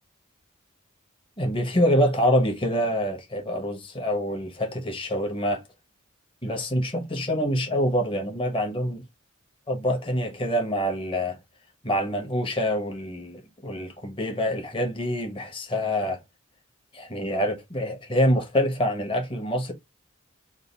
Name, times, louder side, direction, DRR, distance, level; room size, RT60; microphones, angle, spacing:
voice 1, 1.4-5.6 6.4-9.0 9.7-11.4 11.8-16.2 16.9-19.7, equal, 25° left, 1.1 m, -26 dB
3.6 x 2.5 x 4.0 m
head